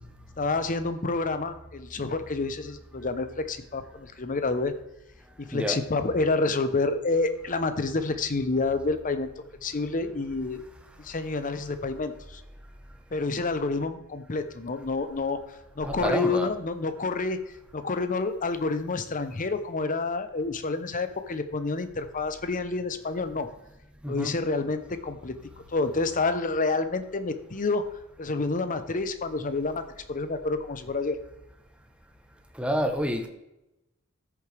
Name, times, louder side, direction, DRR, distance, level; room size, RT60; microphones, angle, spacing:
voice 1, 0.4-4.7 5.4-9.3 9.6-10.6 11.0-12.4 13.1-15.4 15.8-17.4 17.7-23.5 24.0-25.3 25.7-27.8 28.2-29.8 30.1-31.2, left 3 dB, 35° left, 10 dB, 0.7 m, -28 dB
voice 2, 15.8-16.5 24.0-24.4 32.6-33.3, equal, 5° right, 5 dB, 0.9 m, -28 dB
13.5 x 6.7 x 3.3 m, 0.91 s
head